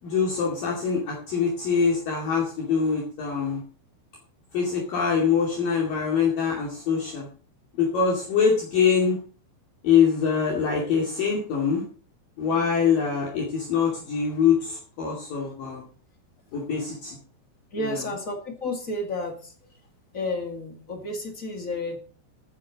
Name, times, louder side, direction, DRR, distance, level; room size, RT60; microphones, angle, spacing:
voice 1, 0.0-3.6 4.5-7.3 7.8-9.2 9.8-11.8 12.4-15.8 16.5-17.2 17.8-18.0, left 6 dB, 55° left, -2 dB, 3.9 m, -24 dB
voice 2, 17.7-19.5 20.1-22.0, left 2 dB, 35° left, 3 dB, 1.3 m, -31 dB
16.0 x 10.0 x 4.1 m, 0.40 s
omnidirectional pair, 5.2 m